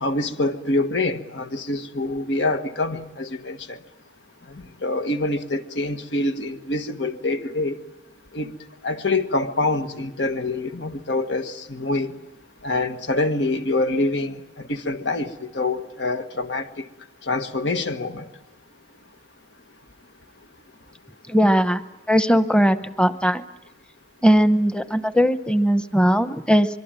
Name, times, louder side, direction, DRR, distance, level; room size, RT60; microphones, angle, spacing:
voice 1, 0.0-3.8 4.8-7.8 8.3-8.5 8.8-12.1 12.6-16.7 17.3-18.2, left 2 dB, 85° left, 8 dB, 1.6 m, -25 dB
voice 2, 21.3-21.8 22.1-23.4 24.2-26.7, equal, 5° left, 11 dB, 0.9 m, -19 dB
24.5 x 23.5 x 9.0 m, 0.95 s
head